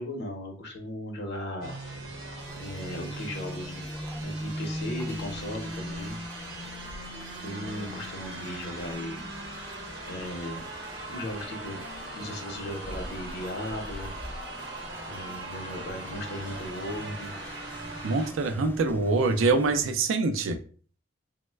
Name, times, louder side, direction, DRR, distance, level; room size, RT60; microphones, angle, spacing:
voice 1, 0.0-1.7 2.3-3.8 4.2-6.2 7.4-9.2 10.1-10.7 11.1-11.8 12.1-14.1 15.1-17.3, left 1 dB, 60° left, 3 dB, 0.7 m, -37 dB
sound 1, 1.6-18.3, right 1 dB, 60° right, 0.8 m, -39 dB
sound 2, 2.4-19.9, left 1 dB, 10° left, 0.4 m, -46 dB
voice 2, 18.0-20.6, right 3 dB, 85° right, 7 dB, 0.4 m, -24 dB
3.1 x 2.1 x 3.2 m, 0.42 s
head